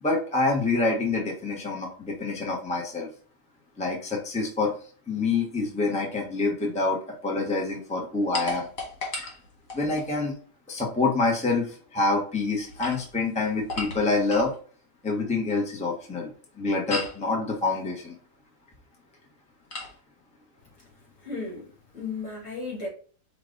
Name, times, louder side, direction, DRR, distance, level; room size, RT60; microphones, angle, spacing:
voice 1, 0.0-3.1 3.8-4.7 5.1-8.7 9.7-10.3 10.7-14.5 15.0-16.3 16.6-18.2, left 3 dB, 5° left, 0.9 m, -26 dB
sound 1, 8.3-10.1 12.6-14.6 16.9-17.3 19.7-20.0, left 3 dB, 80° left, 1.9 m, -35 dB
voice 2, 21.2-21.7 21.9-22.9, left 3 dB, 65° left, 2.5 m, -34 dB
5.1 x 2.5 x 3.8 m
omnidirectional pair, 1.4 m